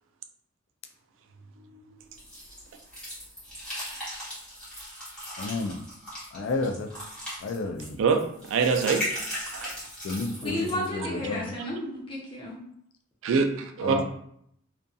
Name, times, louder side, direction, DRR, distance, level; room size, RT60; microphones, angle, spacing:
voice 1, 1.7-2.1 8.0-8.2 8.5-9.0 9.5-9.7 13.2-14.0, right 5 dB, 75° right, 6 dB, 0.3 m, -24 dB
sound 1, 2.2-10.9, equal, 5° left, 1.0 m, -38 dB
voice 2, 5.4-5.8 6.3-6.9 7.4-8.0 10.0-11.5 13.8-14.0, left 3 dB, 75° left, 6 dB, 0.3 m, -31 dB
voice 3, 10.4-12.6, left 1 dB, 25° left, -4 dB, 0.7 m, -32 dB
2.6 x 2.5 x 2.3 m, 0.70 s
head